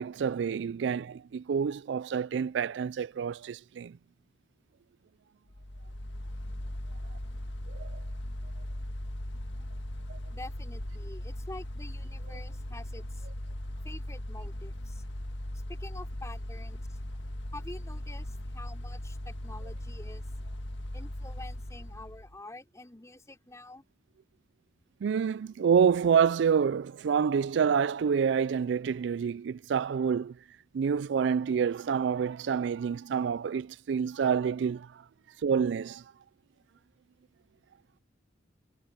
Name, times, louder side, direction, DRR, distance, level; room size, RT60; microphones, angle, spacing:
voice 1, 0.0-4.0 7.7-7.9 10.1-10.2 25.0-30.4 30.7-34.9 35.4-36.0, right 7 dB, 70° right, 0.3 m, -27 dB
Mechanical fan, 5.5-22.4, left 1 dB, 75° left, 1.8 m, -38 dB
voice 2, 10.3-13.3 13.8-15.0 15.7-17.0 17.5-20.2 20.9-23.8, left 2 dB, 15° left, 4.5 m, -47 dB
head